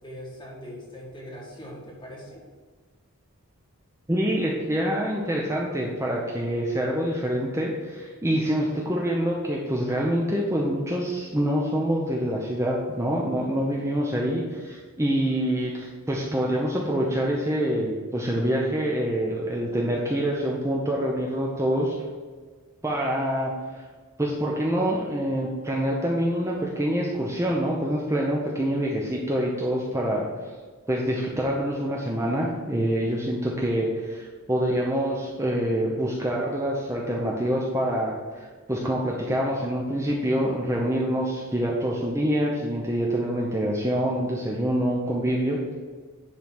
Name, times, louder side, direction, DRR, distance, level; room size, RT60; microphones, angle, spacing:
voice 1, 0.0-2.4, equal, 20° left, -4 dB, 2.1 m, -41 dB
voice 2, 4.1-21.9 22.8-23.9 24.2-30.5 30.9-45.6, equal, 15° right, -3 dB, 0.8 m, -26 dB
10.5 x 3.5 x 6.1 m, 1.5 s
head